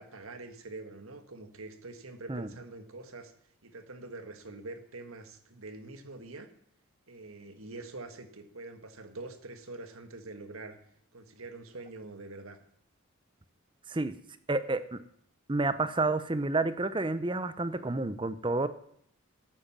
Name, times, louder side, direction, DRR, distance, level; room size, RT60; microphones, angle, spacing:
voice 1, 0.0-3.3 3.6-6.5 7.1-10.8 11.1-12.6, right 2 dB, 75° right, 8 dB, 1.7 m, -45 dB
voice 2, 14.5-15.0 15.5-18.7, right 2 dB, 20° right, 13 dB, 0.7 m, -30 dB
12.0 x 9.0 x 7.4 m, 0.67 s
head